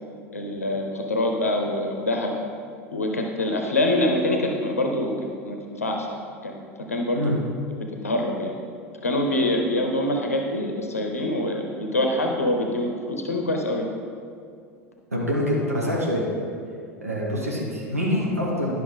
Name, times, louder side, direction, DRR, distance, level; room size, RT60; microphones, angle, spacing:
voice 1, 0.3-2.3 2.9-5.1 5.4-6.1 6.4-6.6 6.9-7.2 8.0-8.5 9.0-13.9, left 1 dB, 80° left, 2 dB, 0.7 m, -25 dB
voice 2, 15.1-16.2 17.0-18.8, equal, 85° right, -4 dB, 1.2 m, -25 dB
10.5 x 5.7 x 3.7 m, 2.2 s
figure-of-eight pair, 75°, 8 cm